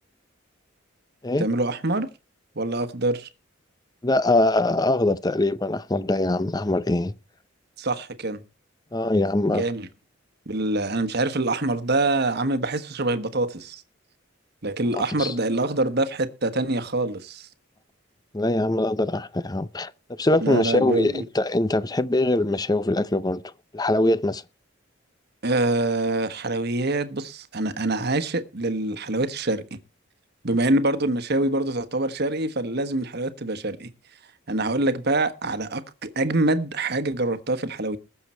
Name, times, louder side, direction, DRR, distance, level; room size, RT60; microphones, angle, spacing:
voice 1, 1.4-2.1 2.5-3.3 7.8-8.4 9.5-9.9 10.5-13.8 14.6-17.5 20.4-21.2 25.4-29.6 30.4-33.9 34.5-38.0, right 2 dB, 50° right, 1.3 m, -25 dB
voice 2, 4.0-7.1 8.9-9.6 15.2-15.3 18.3-19.9 20.2-23.4 23.7-24.4, left 2 dB, 20° left, 0.6 m, -22 dB
20.5 x 7.0 x 4.4 m
head